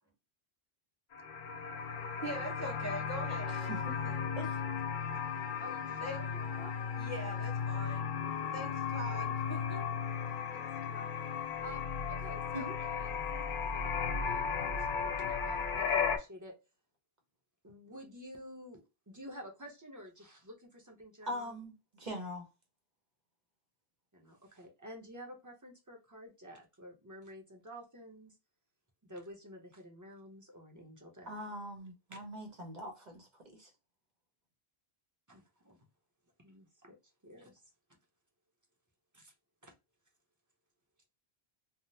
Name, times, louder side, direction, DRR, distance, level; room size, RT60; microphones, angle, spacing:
sound 1, 1.1-16.2, left 6 dB, 60° left, 0.6 m, -35 dB
voice 1, 2.2-3.8 4.0-4.2 6.0-6.2 7.0-8.1 8.5-9.9, right 1 dB, 20° left, 0.7 m, -42 dB
voice 2, 3.3-4.0 4.4-4.6 12.5-12.7 21.3-22.5 31.3-33.7, equal, 50° right, 0.9 m, -42 dB
voice 3, 5.6-6.7 8.9-9.0 10.5-11.1 11.6-13.9 14.2-16.5 17.6-21.6 24.1-28.3 29.0-31.3 32.1-32.2 35.3-35.8 36.4-37.0 37.2-37.6 39.1-39.3 39.6-39.7, equal, 20° right, 0.8 m, -51 dB
3.5 x 2.0 x 2.7 m
omnidirectional pair, 1.0 m